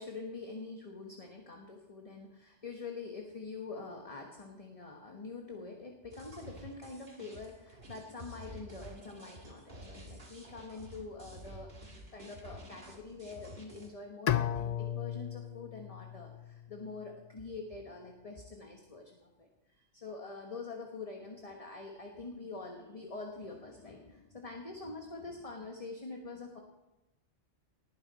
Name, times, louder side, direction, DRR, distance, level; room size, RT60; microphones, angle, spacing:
voice 1, 0.0-26.6, left 3 dB, 30° left, 1 dB, 1.4 m, -45 dB
sound 1, 6.1-13.9, equal, 45° right, 2.3 m, -51 dB
Bowed string instrument, 14.3-17.3, left 10 dB, 55° left, 0.4 m, -35 dB
19.0 x 10.0 x 4.2 m, 0.99 s
omnidirectional pair, 1.2 m